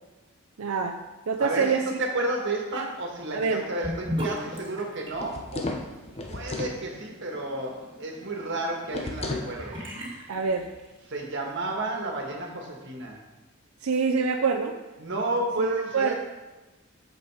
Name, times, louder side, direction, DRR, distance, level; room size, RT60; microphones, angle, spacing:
voice 1, 0.6-1.8 2.7-2.9 3.3-3.6 10.3-10.7 13.8-14.8 15.6-16.1, right 5 dB, 85° right, 3 dB, 0.5 m, -26 dB
voice 2, 1.4-5.8 6.3-9.8 11.1-13.2 15.0-16.1, right 2 dB, 55° right, 0 dB, 1.6 m, -31 dB
Sink (filling or washing) / Bathtub (filling or washing), 3.8-11.1, equal, 25° right, 1.9 m, -38 dB
sound 1, 5.1-6.8 8.9-9.5, left 2 dB, 30° left, 0.7 m, -33 dB
7.0 x 6.7 x 4.8 m, 1.1 s
head